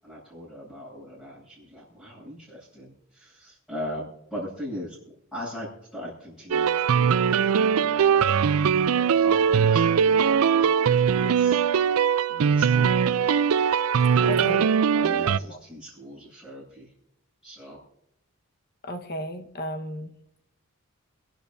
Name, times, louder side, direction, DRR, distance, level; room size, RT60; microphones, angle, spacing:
voice 1, 0.0-5.0 5.3-7.2 7.5-11.6 12.3-12.9 14.2-14.7 14.9-16.9 17.4-17.8, equal, ahead, -10 dB, 7.6 m, -39 dB
sound 1, 6.5-15.4, right 7 dB, 85° right, 0.4 m, -21 dB
voice 2, 14.3-14.6 15.5-15.6 18.8-20.1, equal, 50° left, 6 dB, 1.3 m, -34 dB
29.5 x 12.0 x 2.7 m, 0.77 s
head